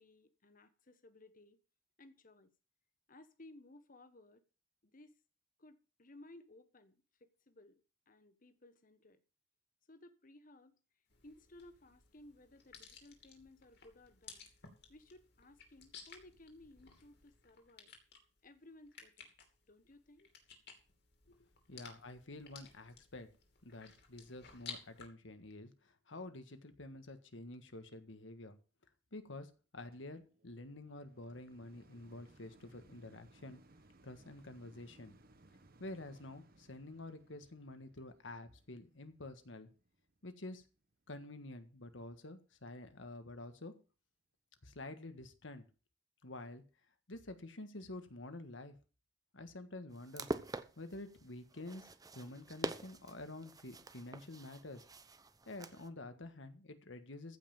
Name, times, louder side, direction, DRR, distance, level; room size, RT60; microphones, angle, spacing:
voice 1, 0.0-1.6 2.0-2.5 3.1-4.4 4.8-5.1 5.6-9.2 9.9-10.8 11.2-14.5 14.9-17.9 18.4-19.3 19.7-20.3, left 2 dB, 45° left, 1.3 m, -59 dB
sound 1, 11.1-25.1, left 6 dB, 60° left, 2.9 m, -56 dB
voice 2, 21.7-23.3 23.6-28.6 29.1-33.6 34.0-35.1 35.8-39.7 40.2-40.6 41.1-43.7 44.6-45.6 46.2-46.6 47.1-48.7 49.3-50.3 50.8-51.8 52.1-54.8 55.5-57.4, left 2 dB, 80° left, 1.6 m, -49 dB
sound 2, 29.9-41.2 41.8-41.9, right 2 dB, 50° right, 1.1 m, -65 dB
sound 3, 49.9-55.9, right 2 dB, 20° right, 0.8 m, -45 dB
15.0 x 5.7 x 7.2 m
head